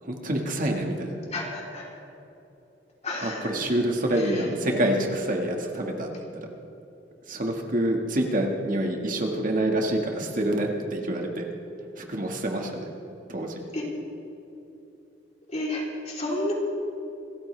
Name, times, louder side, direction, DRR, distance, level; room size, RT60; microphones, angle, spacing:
voice 1, 0.0-1.2 3.2-6.1 7.3-11.5 12.0-12.9 13.3-13.6, right 1 dB, 45° right, 2 dB, 1.8 m, -27 dB
voice 2, 1.3-1.9 3.0-3.6 4.1-4.8 13.7-13.9 15.5-16.5, left 1 dB, 35° left, -3 dB, 3.5 m, -32 dB
27.5 x 14.5 x 3.4 m, 2.9 s
head